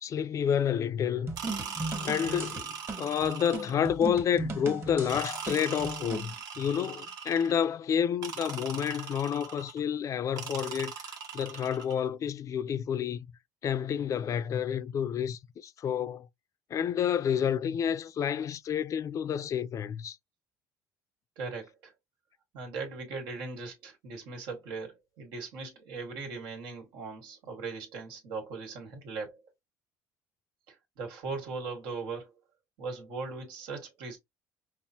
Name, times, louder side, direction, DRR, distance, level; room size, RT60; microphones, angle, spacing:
voice 1, 0.0-1.3 2.0-10.9 11.3-13.3 13.6-16.3 16.7-20.2, left 8 dB, 45° left, 0.4 m, -29 dB
sound 1, 1.3-6.3, right 2 dB, 30° right, 1.3 m, -37 dB
sound 2, 1.4-3.9 5.1-7.7 8.2-9.8 10.4-12.0, right 6 dB, 55° right, 1.1 m, -40 dB
voice 2, 21.4-21.9 22.5-29.4 30.7-32.4 32.8-34.2, right 4 dB, 80° right, 1.6 m, -39 dB
5.4 x 2.1 x 2.8 m
cardioid pair, 100°, 8 cm